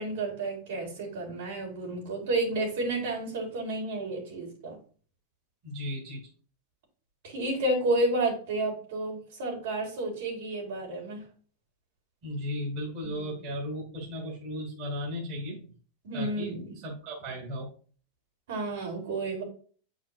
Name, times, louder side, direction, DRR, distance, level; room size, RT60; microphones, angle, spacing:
voice 1, 0.0-4.8 7.2-11.3 13.0-13.6 16.0-16.7 18.5-19.4, right 2 dB, 75° right, 0 dB, 3.4 m, -31 dB
voice 2, 5.6-6.2 12.2-15.6 16.1-16.5 16.8-17.7, equal, 35° right, -2 dB, 2.5 m, -35 dB
8.5 x 4.9 x 2.5 m, 0.42 s
supercardioid pair, 165°, 0 cm